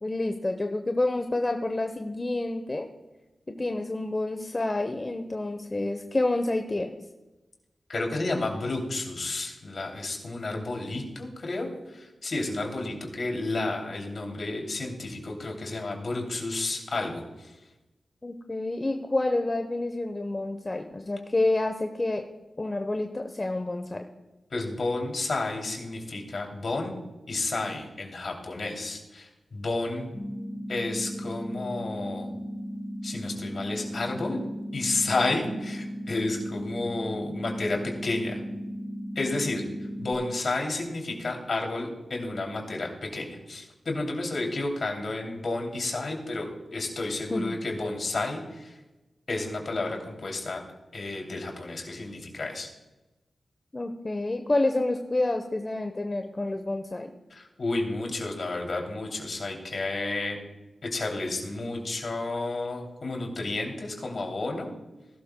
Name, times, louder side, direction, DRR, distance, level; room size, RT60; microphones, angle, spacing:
voice 1, 0.0-2.9 3.5-6.9 18.2-22.2 22.6-24.1 47.3-47.6 53.7-57.1, left 2 dB, 35° left, 6 dB, 0.9 m, -28 dB
voice 2, 7.9-17.5 24.5-27.0 27.3-30.1 30.7-32.3 33.0-34.4 34.7-38.4 39.1-39.6 40.0-48.7 49.3-50.6 50.9-52.7 57.3-60.4 60.8-64.7, left 2 dB, 65° left, 1 dB, 2.9 m, -31 dB
sound 1, 30.1-40.1, equal, ahead, 1.8 m, -36 dB
19.0 x 12.0 x 2.2 m, 1.1 s
cardioid pair, 45°, 0 cm